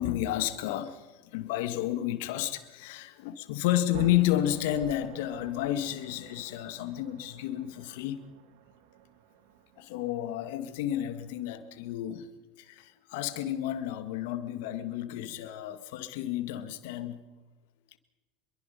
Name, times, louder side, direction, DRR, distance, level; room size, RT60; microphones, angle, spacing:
voice 1, 0.0-8.2 9.8-12.3 12.6-17.2, left 13 dB, 65° left, 1.8 m, -31 dB
sound 1, 3.9-11.9, right 12 dB, 65° right, 1.3 m, -50 dB
26.0 x 23.0 x 5.4 m
hypercardioid pair, 80°, 0 cm